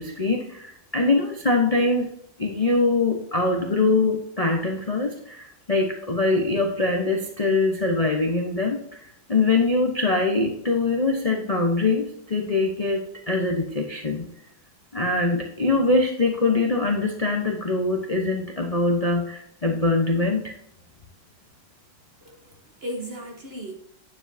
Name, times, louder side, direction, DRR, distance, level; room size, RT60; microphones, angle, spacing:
voice 1, 0.0-2.1 2.4-9.0 9.3-14.3 14.9-20.5, left 3 dB, 35° left, 2 dB, 0.6 m, -23 dB
voice 2, 22.2-23.8, equal, 40° right, 2 dB, 1.1 m, -36 dB
9.9 x 7.2 x 2.7 m, 0.72 s
omnidirectional pair, 2.1 m